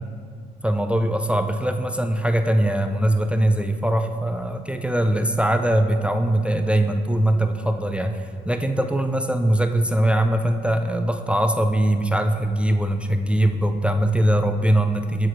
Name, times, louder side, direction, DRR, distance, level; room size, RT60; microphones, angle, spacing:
voice 1, 0.6-15.3, right 1 dB, 5° right, 7 dB, 0.3 m, -21 dB
7.6 x 3.9 x 4.5 m, 2.1 s
cardioid pair, 90°, 20 cm